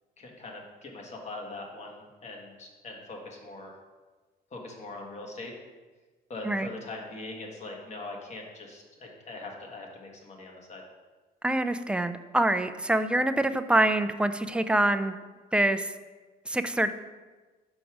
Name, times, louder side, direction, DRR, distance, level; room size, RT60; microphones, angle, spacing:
voice 1, 0.2-3.8 4.5-5.5 6.3-10.8, left 2 dB, 40° left, 1 dB, 1.5 m, -42 dB
voice 2, 11.4-15.1 15.5-15.9 16.5-16.9, right 1 dB, 5° right, 10 dB, 0.3 m, -25 dB
5.2 x 4.8 x 5.9 m, 1.3 s
cardioid pair, 110°, 17 cm